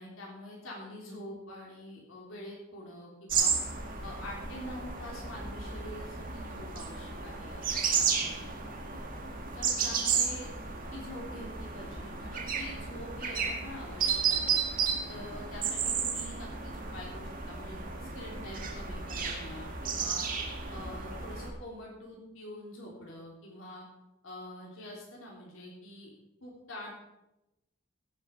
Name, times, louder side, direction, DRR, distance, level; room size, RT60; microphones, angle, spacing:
voice 1, 0.0-3.5 4.0-9.0 9.6-14.6 15.1-20.2 20.7-23.9 24.2-26.1 26.4-26.9, left 1 dB, 80° left, -3 dB, 3.5 m, -46 dB
sound 1, 3.3-21.5, right 6 dB, 40° right, 2.0 m, -33 dB
16.5 x 8.0 x 5.3 m, 0.93 s
head